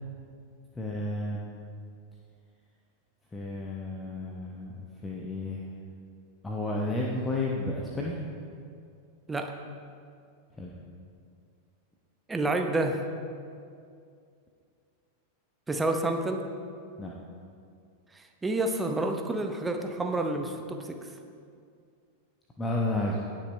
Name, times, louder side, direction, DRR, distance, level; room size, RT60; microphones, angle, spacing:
voice 1, 0.7-1.4 3.3-5.7 6.4-8.2 10.6-10.7 17.0-17.1 22.6-23.2, left 2 dB, 15° left, -2 dB, 1.0 m, -32 dB
voice 2, 12.3-13.0 15.7-16.4 18.1-21.1, right 2 dB, 10° right, 4 dB, 0.9 m, -29 dB
17.5 x 6.1 x 3.2 m, 2.4 s
figure-of-eight pair, 90°, 0 cm